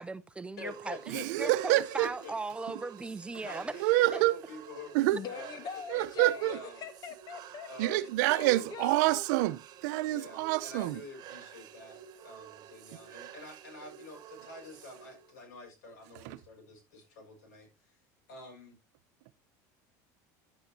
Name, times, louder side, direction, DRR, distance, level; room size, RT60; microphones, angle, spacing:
voice 1, 0.0-3.7 4.1-4.2, right 3 dB, 10° right, 0.7 m, -38 dB
voice 2, 0.6-2.3 2.6-2.7 3.4-5.6 5.9-6.8 7.7-8.2 10.1-17.9 18.3-18.8, left 2 dB, 85° left, 6.2 m, -47 dB
sound 1, 0.7-15.3, right 10 dB, 45° right, 1.6 m, -51 dB
voice 3, 1.1-2.1 3.8-4.3 4.9-5.2 5.9-6.6 7.8-11.0 16.2-16.4, right 18 dB, 80° right, 0.8 m, -27 dB
voice 4, 5.1-8.0 8.3-9.2, left 6 dB, 45° left, 1.7 m, -42 dB
11.0 x 9.0 x 2.8 m
supercardioid pair, 115°, 9 cm